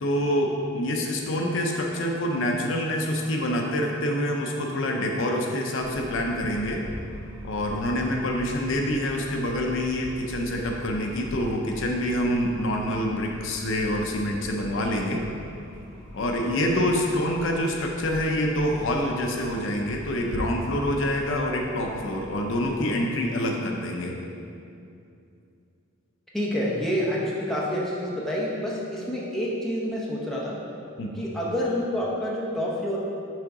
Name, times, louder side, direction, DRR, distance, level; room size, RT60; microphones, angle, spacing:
voice 1, 0.0-6.8 7.4-15.2 16.1-24.1 31.0-31.2, left 1 dB, 60° left, 1 dB, 0.6 m, -26 dB
sound 1, 5.8-22.7, equal, 60° right, 1.2 m, -42 dB
voice 2, 16.5-16.9 26.3-30.6 31.1-33.0, equal, ahead, -6 dB, 0.8 m, -28 dB
6.2 x 3.8 x 4.7 m, 2.6 s
head